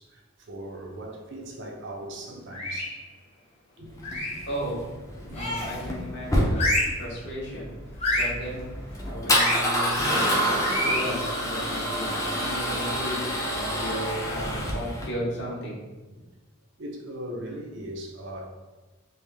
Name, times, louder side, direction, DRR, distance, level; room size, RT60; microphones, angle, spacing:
voice 1, 0.0-3.0 3.8-4.5 5.2-5.4 16.1-16.3 16.8-18.5, right 1 dB, 60° right, 0 dB, 0.5 m, -39 dB
sound 1, 2.5-3.0 4.0-4.5 5.3-5.8 6.5-7.0 8.0-8.4 9.3-9.6 10.6-11.1, left 1 dB, 30° left, 0.8 m, -27 dB
Male speech man speaking / Car / Engine starting, 4.0-15.1, equal, 15° left, 0.4 m, -28 dB
voice 2, 4.5-4.9 5.2-7.7 8.1-8.7 9.0-10.4 10.8-15.8, right 1 dB, 60° left, -5 dB, 1.1 m, -35 dB
3.3 x 2.5 x 3.3 m, 1.2 s
head